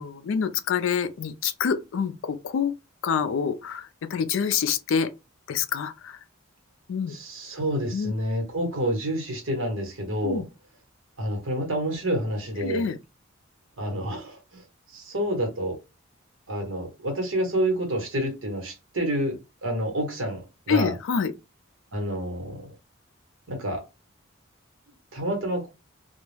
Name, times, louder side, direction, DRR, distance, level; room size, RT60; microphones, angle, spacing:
voice 1, 0.0-2.7 3.0-5.1 5.5-6.2 6.9-7.2 7.9-8.1 10.2-10.5 12.6-13.0 20.7-21.3, left 6 dB, 70° left, 0.3 m, -26 dB
voice 2, 7.1-10.4 11.2-12.8 13.8-14.6 14.9-15.8 16.5-19.4 19.6-20.9 21.9-22.7 23.5-23.8 25.1-25.7, right 1 dB, 70° right, 1.0 m, -28 dB
2.2 x 2.0 x 3.1 m
head